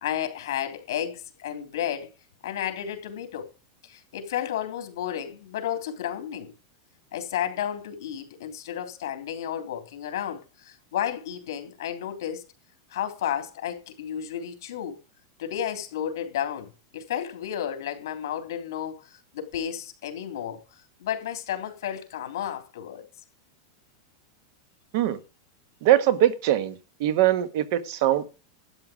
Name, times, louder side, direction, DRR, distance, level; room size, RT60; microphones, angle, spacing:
voice 1, 0.0-2.1 2.4-3.5 3.8-6.5 7.1-12.4 12.9-15.0 15.4-23.1, left 10 dB, 70° left, 3.3 m, -32 dB
voice 2, 25.8-26.7 27.0-28.2, right 12 dB, 45° right, 1.2 m, -22 dB
12.5 x 8.7 x 5.1 m
supercardioid pair, 170°, 2 cm